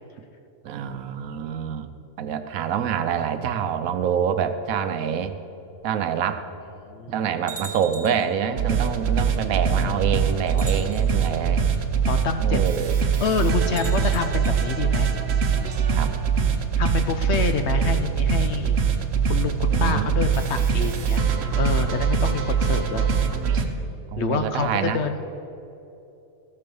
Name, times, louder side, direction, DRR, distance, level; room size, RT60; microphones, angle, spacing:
voice 1, 0.6-1.9 2.2-5.4 5.8-6.4 7.1-11.6 12.4-13.0 15.9-16.1 19.7-20.1 24.1-25.0, right 8 dB, 75° right, 10 dB, 1.1 m, -26 dB
voice 2, 6.8-7.1 9.7-10.1 11.3-11.7 12.0-12.6 13.2-15.1 16.8-18.8 19.3-21.2 21.6-23.1 24.2-25.2, left 5 dB, 60° left, 8 dB, 0.8 m, -27 dB
sound 1, 7.5-8.3 9.5-9.6 10.5-11.3 13.7-14.6, right 2 dB, 10° left, 1.7 m, -40 dB
sound 2, 8.6-23.6, right 6 dB, 55° right, 1.0 m, -23 dB
14.0 x 6.7 x 7.0 m, 2.9 s
omnidirectional pair, 1.5 m